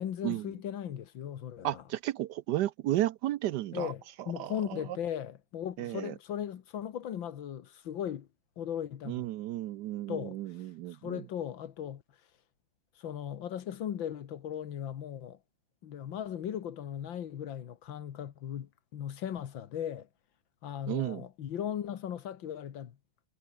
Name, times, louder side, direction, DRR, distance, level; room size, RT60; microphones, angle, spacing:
voice 1, 0.0-1.8 3.7-8.3 8.6-9.3 10.1-10.4 11.0-12.0 13.0-15.4 15.8-20.1 20.6-22.9, left 9 dB, 85° left, 2.0 m, -37 dB
voice 2, 1.6-3.9 4.4-4.8 5.8-6.1 9.1-11.2 20.9-21.2, right 14 dB, 70° right, 1.1 m, -33 dB
omnidirectional pair, 2.1 m